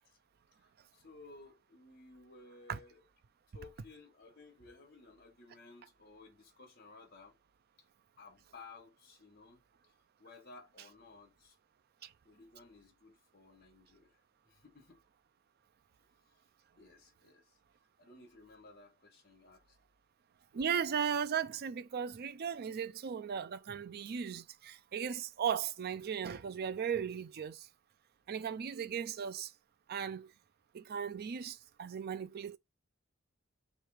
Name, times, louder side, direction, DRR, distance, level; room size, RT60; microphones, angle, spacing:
voice 1, 0.6-3.0 3.5-7.3 8.2-9.6 10.2-11.5 12.2-14.1 14.5-15.0 16.7-17.5 18.0-19.8, left 3 dB, 50° left, 1.5 m, -56 dB
voice 2, 20.5-27.7 28.3-29.5 29.9-30.3 30.7-32.6, right 7 dB, 50° right, 0.4 m, -37 dB
3.3 x 3.2 x 4.8 m
head